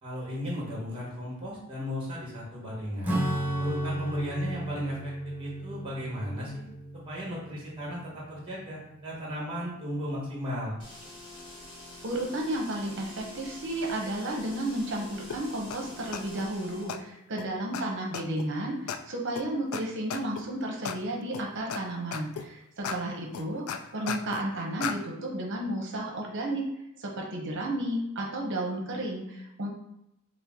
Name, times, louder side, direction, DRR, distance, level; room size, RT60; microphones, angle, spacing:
voice 1, 0.0-3.2 3.6-6.6 7.0-10.8, equal, 25° right, -5 dB, 1.2 m, -35 dB
Acoustic guitar / Strum, 3.0-9.0, right 1 dB, 10° right, 0.5 m, -34 dB
sound 1, 10.8-17.0, left 2 dB, 25° left, 1.4 m, -46 dB
voice 2, 12.0-26.6 27.0-29.7, right 1 dB, 55° right, 0 dB, 0.8 m, -32 dB
sound 2, 15.3-15.4 15.7-15.8 16.1-16.5 16.9-17.0 17.4-17.5 17.7-17.8 18.1-18.5 18.9-19.0 19.4-19.5 19.7-19.8 20.1-20.4 20.9-21.0 21.3-21.8 22.1-22.5 22.8-23.0 23.3-24.4 24.8-25.0, left 7 dB, 70° left, 0.3 m, -34 dB
4.5 x 2.1 x 3.6 m, 0.82 s
head